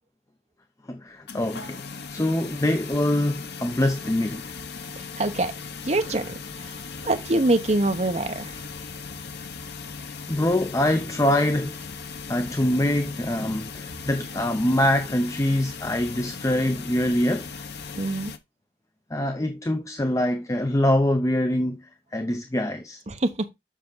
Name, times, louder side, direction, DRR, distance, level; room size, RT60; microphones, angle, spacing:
voice 1, 0.9-4.5 10.3-11.8 12.3-17.5 19.1-23.0, left 1 dB, 20° left, 0.6 m, -24 dB
sound 1, 1.3-18.4, left 5 dB, 65° left, 1.0 m, -38 dB
voice 2, 5.0-5.5 5.8-8.6 17.9-18.3 23.1-23.5, right 2 dB, 35° right, 0.9 m, -25 dB
7.4 x 5.9 x 3.9 m
head